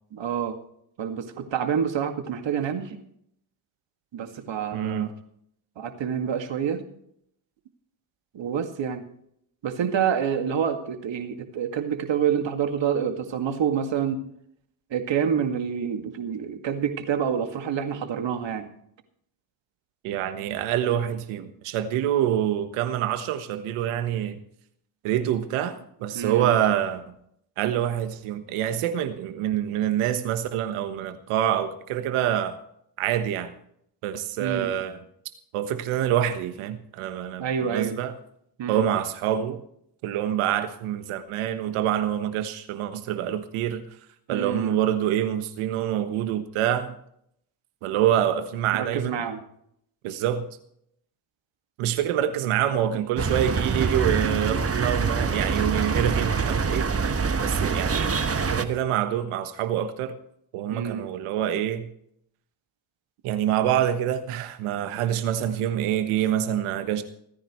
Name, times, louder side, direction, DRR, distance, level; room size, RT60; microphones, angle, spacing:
voice 1, 0.1-0.6 1.0-3.0 4.1-5.1 5.8-6.8 8.3-9.0 9.6-14.2 14.9-18.7 26.1-26.5 34.4-34.7 37.4-38.0 38.6-38.9 44.3-44.8 48.7-49.4 60.7-61.1, right 8 dB, 60° right, 6 dB, 2.1 m, -27 dB
voice 2, 4.7-5.1 20.0-24.4 25.0-27.0 27.6-32.6 33.0-33.5 34.0-35.0 35.5-38.1 38.7-39.6 40.0-43.8 44.3-46.9 47.8-49.2 50.0-50.5 51.8-56.9 57.4-58.1 58.5-60.1 60.5-61.9 63.2-67.0, right 10 dB, 90° right, 10 dB, 1.3 m, -26 dB
sound 1, 53.2-58.7, right 5 dB, 30° right, 1.3 m, -25 dB
27.0 x 10.0 x 3.2 m, 0.71 s
supercardioid pair, 60°, 49 cm